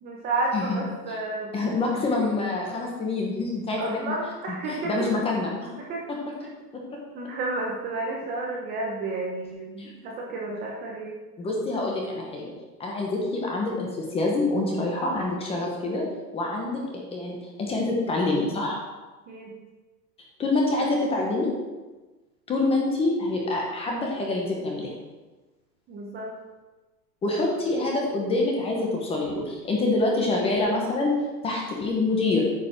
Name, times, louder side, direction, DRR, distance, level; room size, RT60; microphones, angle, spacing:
voice 1, 0.0-1.5 3.8-5.1 5.9-6.0 7.1-11.2 19.3-19.5 25.9-26.3, right 2 dB, 20° right, -2 dB, 0.9 m, -31 dB
voice 2, 1.5-4.2 4.7-5.7 6.7-6.8 9.8-9.9 11.4-12.5 12.8-16.0 16.3-16.8 17.1-18.8 20.4-21.5 22.5-24.9 27.2-31.1 31.4-32.5, left 2 dB, 10° left, -1 dB, 1.0 m, -26 dB
9.1 x 5.2 x 6.2 m, 1.2 s
supercardioid pair, 165°, 49 cm